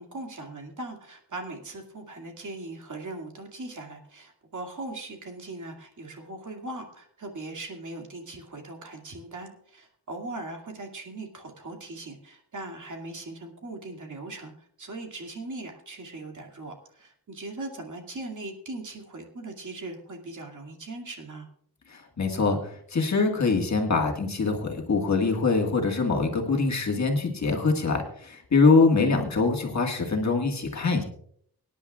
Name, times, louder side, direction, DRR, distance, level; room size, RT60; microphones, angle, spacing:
voice 1, 0.0-14.5 14.8-21.5, right 2 dB, 50° right, 2 dB, 2.4 m, -39 dB
voice 2, 21.9-31.0, left 4 dB, 45° left, 1 dB, 1.8 m, -24 dB
24.5 x 10.0 x 2.4 m, 0.64 s
wide cardioid pair, 160°, 39 cm